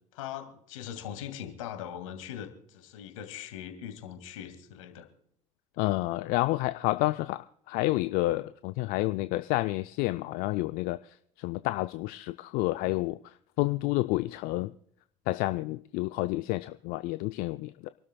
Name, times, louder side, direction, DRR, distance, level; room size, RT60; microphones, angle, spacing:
voice 1, 0.1-5.1 5.8-5.9, left 10 dB, 75° left, 8 dB, 2.2 m, -41 dB
voice 2, 5.8-11.0 11.4-13.2 13.6-14.7 15.3-17.9, left 19 dB, 55° left, 13 dB, 0.5 m, -29 dB
28.0 x 12.5 x 2.3 m, 0.65 s
hypercardioid pair, 65°, 17 cm